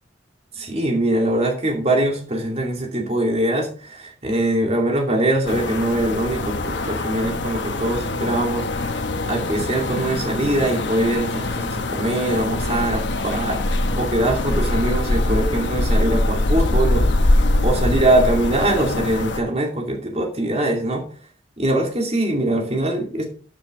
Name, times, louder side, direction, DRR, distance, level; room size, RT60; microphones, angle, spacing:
voice 1, 0.5-21.1 21.6-23.2, right 1 dB, 35° right, 1 dB, 2.4 m, -22 dB
sound 1, 5.5-19.4, left 2 dB, 70° left, 1.1 m, -23 dB
13.0 x 6.7 x 3.7 m, 0.41 s
head